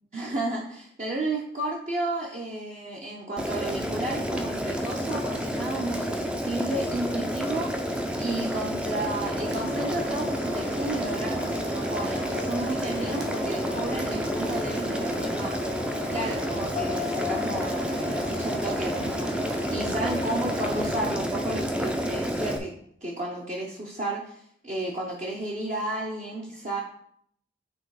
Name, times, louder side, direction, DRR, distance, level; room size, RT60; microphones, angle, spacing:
voice 1, 0.1-15.5 16.1-22.7 23.0-26.8, right 2 dB, 35° right, -3 dB, 0.8 m, -33 dB
Boiling, 3.4-22.6, equal, 5° right, 0.5 m, -30 dB
sound 1, 9.2-21.2, equal, 55° right, 1.3 m, -37 dB
sound 2, 16.8-20.5 20.8-20.9, left 12 dB, 55° left, 0.3 m, -39 dB
7.9 x 3.4 x 4.8 m, 0.68 s
head